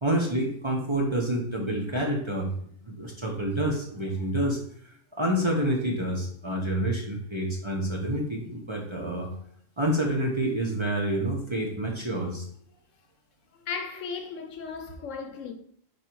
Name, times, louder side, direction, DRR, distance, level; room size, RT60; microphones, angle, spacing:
voice 1, 0.0-2.5 2.9-4.6 5.2-9.3 9.8-12.4, right 1 dB, 25° right, 0.8 m, -28 dB
voice 2, 13.5-15.5, left 5 dB, 75° left, 1.1 m, -36 dB
4.9 x 4.4 x 4.5 m
omnidirectional pair, 1.3 m